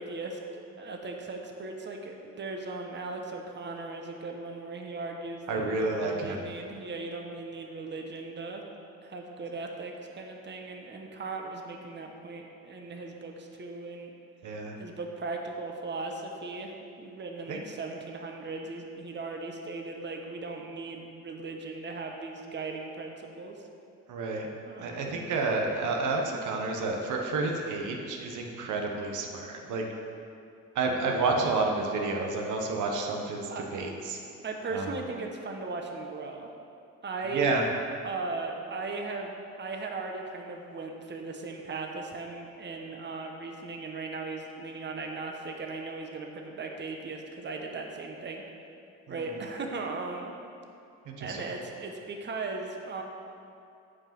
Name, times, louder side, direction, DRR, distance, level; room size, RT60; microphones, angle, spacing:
voice 1, 0.0-8.6 9.0-14.1 14.8-16.7 17.0-23.6 24.7-25.2 33.5-33.6 34.4-36.5 37.0-37.5 38.0-48.4 49.1-50.3 51.2-53.0, right 3 dB, 35° right, 2 dB, 1.0 m, -38 dB
voice 2, 5.5-6.5 14.4-14.8 17.5-17.6 24.1-24.5 24.8-29.8 30.7-34.2 34.7-35.0 37.3-37.6 49.1-49.3 51.0-51.5, right 3 dB, 80° right, 1 dB, 1.1 m, -30 dB
8.6 x 5.0 x 5.9 m, 2.6 s
cardioid pair, 90°, 30 cm